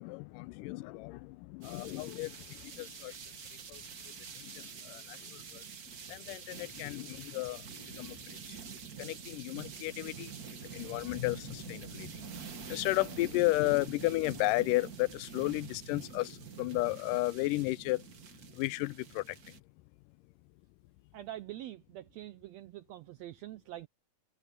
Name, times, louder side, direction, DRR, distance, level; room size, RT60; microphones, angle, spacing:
voice 1, 0.0-3.1 3.7-3.8 4.4-5.6 6.1-7.6 8.0-8.2 9.0-10.3 10.7-12.1 12.7-18.0 18.6-19.2, left 20 dB, 90° left, 2.2 m, -33 dB
sound 1, 1.6-19.6, right 7 dB, 50° right, 1.1 m, -47 dB
voice 2, 21.1-23.9, right 13 dB, 80° right, 1.5 m, -45 dB
omnidirectional pair, 3.7 m